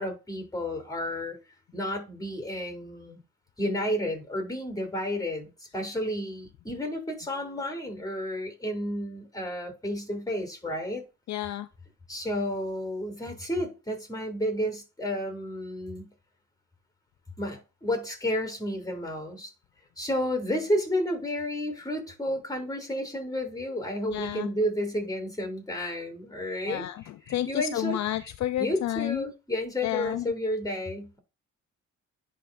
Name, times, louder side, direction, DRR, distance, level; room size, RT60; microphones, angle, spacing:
voice 1, 0.0-1.4 1.7-3.2 3.6-11.0 12.1-16.1 17.4-19.5 20.0-26.8 27.3-28.3 28.6-31.2, left 1 dB, 10° left, 3.0 m, -31 dB
voice 2, 11.3-11.7 24.1-24.5 26.6-29.3 29.8-30.3, left 13 dB, 65° left, 0.5 m, -31 dB
11.0 x 3.8 x 2.5 m
cardioid pair, 90°, 30 cm